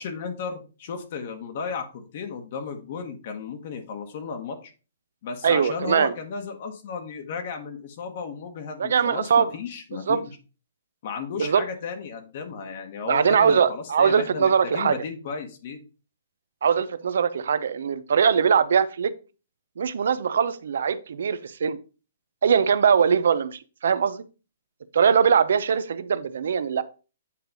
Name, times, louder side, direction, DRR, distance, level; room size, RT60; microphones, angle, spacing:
voice 1, 0.0-4.7 5.2-10.3 11.0-15.8, left 5 dB, 45° left, 5 dB, 1.2 m, -34 dB
voice 2, 5.4-6.1 8.8-9.5 10.1-10.2 11.4-11.6 13.1-15.0 16.6-19.1 19.8-21.8 22.4-24.2 24.9-26.8, right 7 dB, 70° right, 14 dB, 0.7 m, -21 dB
8.5 x 3.1 x 5.2 m, 0.34 s
hypercardioid pair, 160°, 0 cm